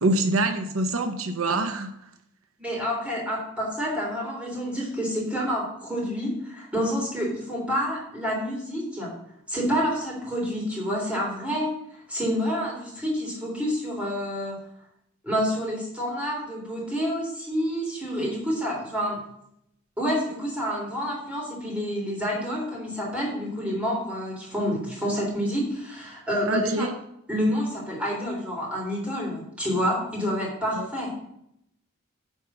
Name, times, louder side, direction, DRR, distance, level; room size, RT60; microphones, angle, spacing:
voice 1, 0.0-1.9 26.5-26.9 30.8-30.9, right 2 dB, 85° right, 7 dB, 0.9 m, -25 dB
voice 2, 2.6-9.1 9.5-11.7 12.1-14.6 15.2-19.2 20.0-26.9 27.3-31.1, equal, 5° right, -3 dB, 3.4 m, -28 dB
10.0 x 4.8 x 6.1 m, 0.76 s
head